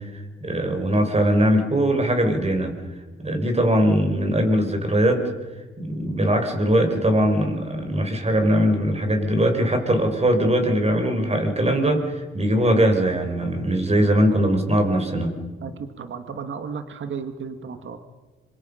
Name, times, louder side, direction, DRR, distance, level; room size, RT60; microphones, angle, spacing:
voice 1, 0.0-2.8 3.2-5.3 5.8-15.4, equal, 30° right, 5 dB, 5.2 m, -21 dB
voice 2, 15.6-18.0, right 6 dB, 65° right, 8 dB, 1.9 m, -34 dB
26.0 x 23.5 x 5.7 m, 1.3 s
cardioid pair, 70°, 21 cm